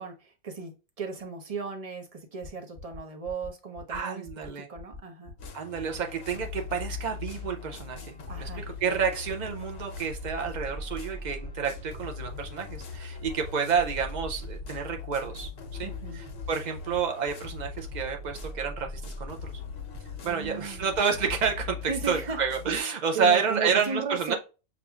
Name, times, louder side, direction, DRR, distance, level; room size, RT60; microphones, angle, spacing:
voice 1, 0.0-4.3 4.7-5.3 8.3-8.7 15.8-16.2 20.2-20.9 21.9-22.4 23.1-24.4, right 5 dB, 35° right, 3 dB, 0.6 m, -35 dB
sound 1, 2.4-2.5 2.7-3.0 3.2-3.5 3.7-4.0 4.3-4.5 4.7-5.0 5.2-5.5 5.7-6.0 6.2-6.5 6.8-7.0 7.2-7.5 7.8-8.0 8.2-8.5 8.7-9.0 9.3-9.5 9.7-10.0 10.2-10.5 10.7-11.0 11.2-11.5 11.7-12.0 12.2-12.5 12.7-13.0 13.2-13.5 13.7-14.0 14.2-14.5 14.8-15.0 15.2-15.5 15.7-16.0 16.2-16.5 16.8-17.0 17.2-17.5 17.7-18.0 18.3-18.5 18.7-19.0 19.2-19.5 19.8-20.0 20.3-20.5 20.8-21.0 21.3-21.5, left 2 dB, 25° left, 0.9 m, -45 dB
voice 2, 3.9-4.7 5.5-15.5 15.8-18.9 19.2-19.5 20.2-24.3, right 6 dB, 90° right, 4 dB, 0.4 m, -29 dB
sound 2, 5.4-22.8, left 4 dB, 55° left, 0.9 m, -40 dB
6.5 x 2.5 x 2.3 m, 0.31 s
omnidirectional pair, 1.5 m